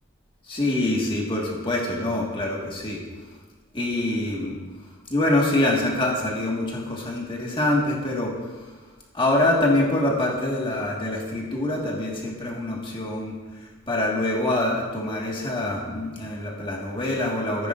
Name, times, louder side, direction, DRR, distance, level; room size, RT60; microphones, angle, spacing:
voice 1, 0.5-3.0 3.7-4.6 5.1-8.3 9.1-13.3 13.9-17.7, left 1 dB, 25° left, -3 dB, 1.8 m, -25 dB
15.0 x 9.9 x 2.6 m, 1.3 s
head